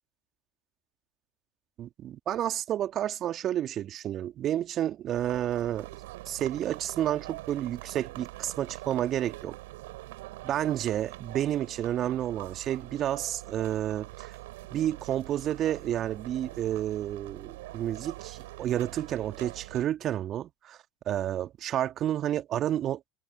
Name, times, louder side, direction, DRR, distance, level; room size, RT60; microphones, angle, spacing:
voice 1, 1.8-5.9 6.3-9.6 10.4-14.3 14.7-20.8 21.1-23.0, right 11 dB, 40° right, 2.0 m, -30 dB
sound 1, 5.1-19.8, right 19 dB, 65° right, 7.9 m, -44 dB
figure-of-eight pair, 75°, 0 cm